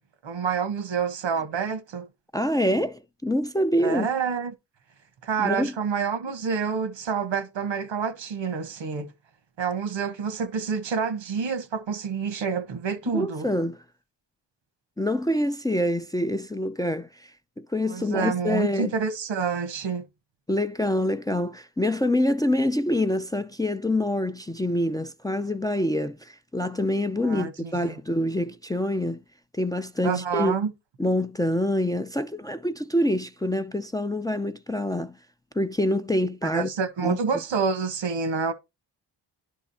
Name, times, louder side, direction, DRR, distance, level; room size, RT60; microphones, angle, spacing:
voice 1, 0.2-2.1 3.8-4.5 5.2-9.1 9.6-13.5 17.9-20.0 27.2-27.5 27.8-27.9 30.0-30.7 36.5-38.5, right 6 dB, 80° right, 1.5 m, -28 dB
voice 2, 2.3-4.1 5.4-5.7 13.1-13.8 15.0-17.3 17.6-18.9 20.5-29.2 29.5-30.5 31.0-35.1 35.5-36.7 37.0-37.2, left 1 dB, 10° left, 0.5 m, -26 dB
11.0 x 3.7 x 4.2 m
cardioid pair, 60°, 45 cm